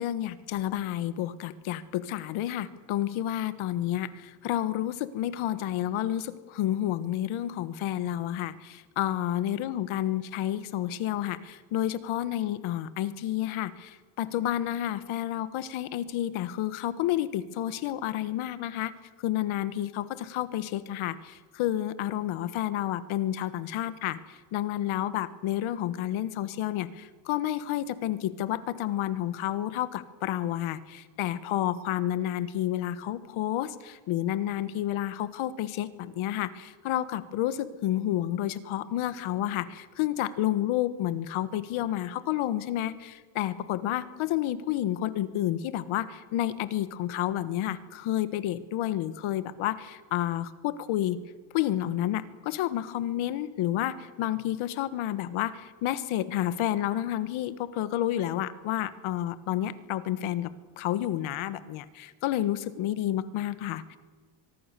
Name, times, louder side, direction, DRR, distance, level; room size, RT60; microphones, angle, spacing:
voice 1, 0.0-18.9 19.2-51.2 51.5-60.5 60.8-64.0, left 12 dB, 75° left, 13 dB, 1.5 m, -30 dB
24.0 x 21.0 x 6.8 m, 1.4 s
cardioid pair, 165°, 50 cm